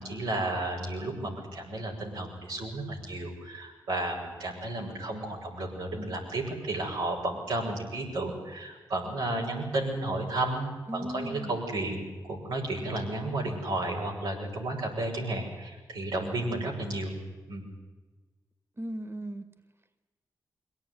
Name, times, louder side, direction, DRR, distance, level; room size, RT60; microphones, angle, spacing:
voice 1, 0.0-17.1 17.5-17.7, right 2 dB, 90° right, -4 dB, 6.4 m, -33 dB
voice 2, 10.9-11.6 18.8-19.4, equal, 30° right, 9 dB, 2.2 m, -36 dB
22.5 x 17.5 x 9.7 m, 1.3 s
supercardioid pair, 40°, 9 cm